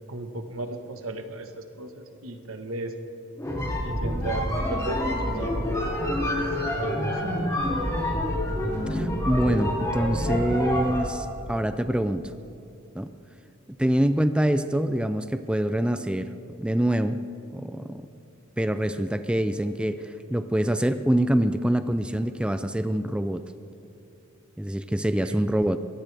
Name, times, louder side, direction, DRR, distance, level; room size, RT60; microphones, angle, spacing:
voice 1, 0.1-2.9 3.8-5.6 6.0-7.7 25.2-25.4, right 2 dB, 80° right, 6 dB, 1.4 m, -36 dB
sound 1, 3.4-11.2, left 1 dB, 15° left, 2.9 m, -27 dB
voice 2, 8.9-12.2 13.0-13.1 13.8-16.3 16.6-17.2 17.5-18.1 18.6-23.5 24.6-25.8, right 1 dB, 5° right, 10 dB, 0.4 m, -25 dB
22.5 x 18.5 x 3.4 m, 2.8 s
head